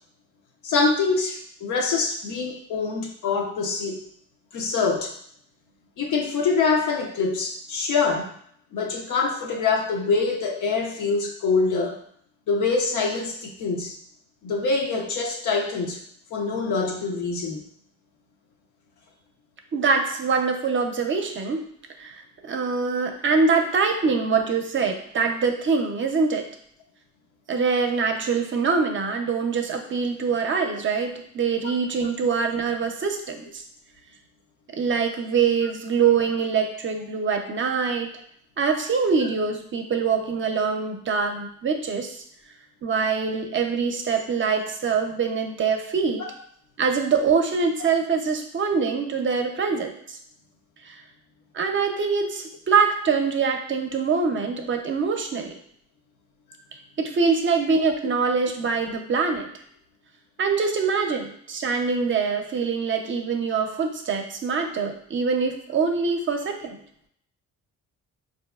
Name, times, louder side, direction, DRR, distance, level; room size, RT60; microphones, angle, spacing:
voice 1, 0.6-4.0 4.5-5.1 6.0-8.3 8.7-12.0 12.5-14.0 14.4-16.0 16.3-17.6 32.0-32.1 46.2-46.3 56.5-56.6, left 4 dB, 75° left, 1 dB, 0.7 m, -25 dB
voice 2, 19.7-21.6 22.0-22.1 22.4-26.5 27.5-33.6 34.7-38.2 38.6-42.2 42.8-46.2 46.8-50.2 50.8-51.0 51.5-55.5 57.0-59.5 60.4-66.8, right 5 dB, 40° right, 4 dB, 0.6 m, -24 dB
4.1 x 2.6 x 2.3 m, 0.65 s
cardioid pair, 90°, 30 cm